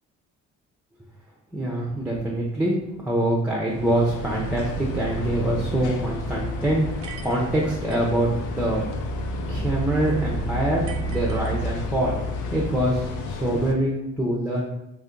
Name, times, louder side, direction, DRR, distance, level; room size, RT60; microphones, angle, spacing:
voice 1, 1.5-2.8 3.0-8.8 9.5-12.2 12.5-14.6, right 1 dB, 5° right, -4 dB, 0.6 m, -25 dB
sound 1, 3.7-13.7, left 1 dB, 85° left, 0.5 m, -30 dB
sound 2, 7.0-8.2 10.9-12.0, right 7 dB, 50° right, 0.5 m, -43 dB
2.6 x 2.6 x 3.7 m, 0.86 s
cardioid pair, 90°, 30 cm